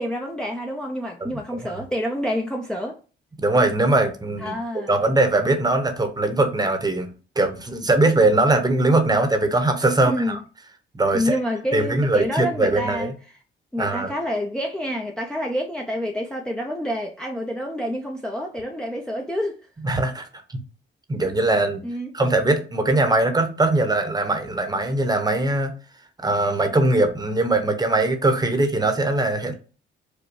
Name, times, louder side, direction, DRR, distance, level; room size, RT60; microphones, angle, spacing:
voice 1, 0.0-3.0 4.4-5.0 10.0-10.4 11.1-13.1 13.7-19.6 21.8-22.1, equal, 5° left, 0.6 m, -28 dB
voice 2, 1.2-1.7 3.4-4.6 4.9-7.1 7.4-10.4 10.9-11.4 11.7-13.1 13.8-14.2 19.8-20.6 21.1-21.8 22.1-25.7 26.2-29.5, right 2 dB, 20° right, 1.0 m, -21 dB
5.1 x 2.2 x 4.7 m
cardioid pair, 90°, 20 cm